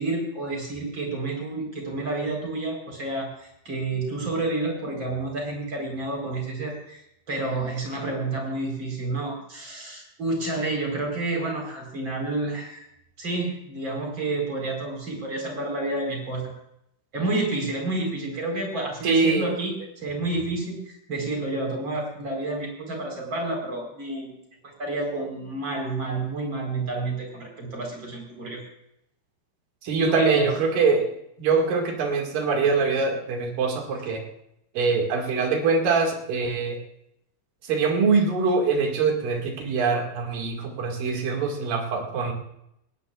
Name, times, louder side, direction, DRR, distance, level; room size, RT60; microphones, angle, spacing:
voice 1, 0.0-12.9 13.2-16.5 17.1-24.4 24.6-28.6 30.0-30.5, right 2 dB, 30° right, 0 dB, 4.8 m, -29 dB
voice 2, 19.0-19.5 29.8-31.1 31.4-34.2 34.8-36.8 37.6-42.3, right 4 dB, 65° right, 1 dB, 3.7 m, -23 dB
20.5 x 17.5 x 2.4 m, 0.78 s
omnidirectional pair, 4.3 m